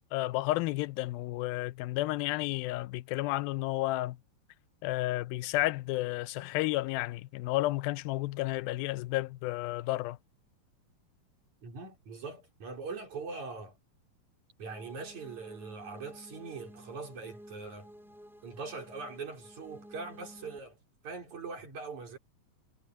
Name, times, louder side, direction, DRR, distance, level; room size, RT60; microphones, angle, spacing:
voice 1, 0.1-4.2 4.8-10.2, left 18 dB, 90° left, 2.4 m, -32 dB
voice 2, 11.6-13.8 14.6-17.9 18.4-20.8 21.0-22.2, right 4 dB, 55° right, 5.9 m, -42 dB
sound 1, 14.6-20.6, equal, ahead, 2.1 m, -52 dB
omnidirectional pair, 4.1 m